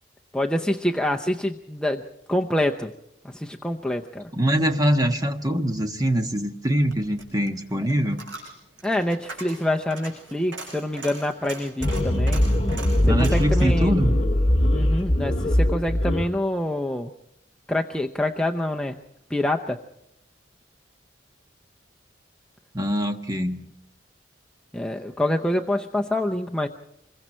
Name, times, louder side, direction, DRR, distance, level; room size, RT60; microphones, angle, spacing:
voice 1, 0.3-2.9 3.2-4.3 8.8-12.5 13.0-13.9 14.7-17.1 17.7-19.0 19.3-19.8 24.7-26.7, left 1 dB, 5° left, 2 dB, 0.7 m, -26 dB
voice 2, 4.3-8.2 13.0-14.2 22.7-23.6, equal, 20° right, 5 dB, 1.5 m, -23 dB
Coin (dropping), 6.7-15.1 15.4-15.5, right 3 dB, 80° right, 5.8 m, -41 dB
sound 1, 11.8-16.3, left 1 dB, 30° left, 2.2 m, -21 dB
26.0 x 22.5 x 4.4 m, 0.83 s
head